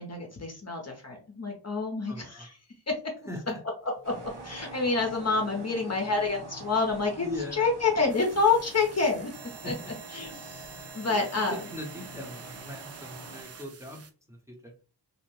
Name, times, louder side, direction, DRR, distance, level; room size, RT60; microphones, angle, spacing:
voice 1, 0.0-2.6 2.9-3.0 4.0-7.3 7.5-9.3 9.6-9.7 10.1-11.6, left 4 dB, 40° left, 2 dB, 0.7 m, -28 dB
voice 2, 2.1-2.5 3.3-3.6 7.2-7.7 9.6-9.7 10.5-11.2 11.5-14.7, left 1 dB, 5° right, -1 dB, 0.7 m, -40 dB
sound 1, 3.8-5.9, left 1 dB, 90° right, 1.4 m, -51 dB
sound 2, 4.0-13.4, right 2 dB, 70° right, 1.2 m, -46 dB
sound 3, 8.1-14.1, right 6 dB, 40° right, 0.4 m, -47 dB
2.7 x 2.1 x 3.0 m, 0.36 s
wide cardioid pair, 65°, 42 cm